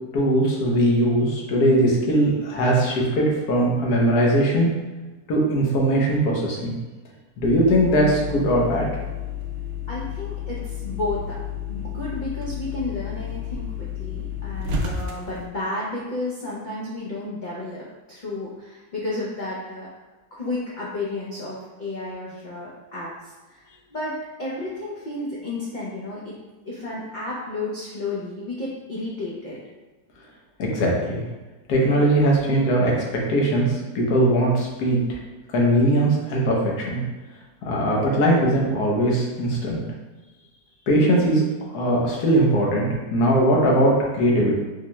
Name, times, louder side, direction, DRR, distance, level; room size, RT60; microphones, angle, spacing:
voice 1, 0.1-4.7 5.3-6.7 7.4-8.9 30.6-31.2 31.7-32.9 33.3-35.2 35.5-37.0 37.6-39.8 40.9-41.4 41.7-44.6, right 1 dB, 80° left, -2 dB, 1.4 m, -20 dB
sound 1, 7.4-15.5, left 6 dB, 65° right, 0.7 m, -31 dB
voice 2, 9.9-11.4 11.7-19.9 20.3-26.3 26.7-29.6, left 2 dB, 60° left, -6 dB, 0.5 m, -32 dB
4.3 x 2.2 x 3.0 m, 1.2 s
omnidirectional pair, 1.7 m